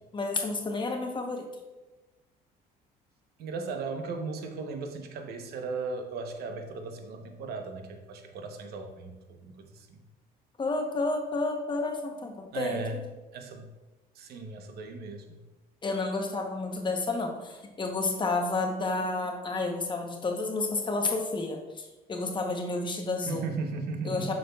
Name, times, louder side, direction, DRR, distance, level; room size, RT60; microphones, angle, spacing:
voice 1, 0.1-1.5 10.6-12.8 15.8-23.5 24.0-24.3, left 3 dB, 30° left, 3 dB, 0.9 m, -30 dB
voice 2, 3.4-10.0 12.5-13.0 13.3-13.7 14.1-15.4 23.3-24.3, right 4 dB, 70° right, 5 dB, 0.9 m, -36 dB
6.8 x 6.3 x 2.3 m, 1.1 s
cardioid pair, 110°, 17 cm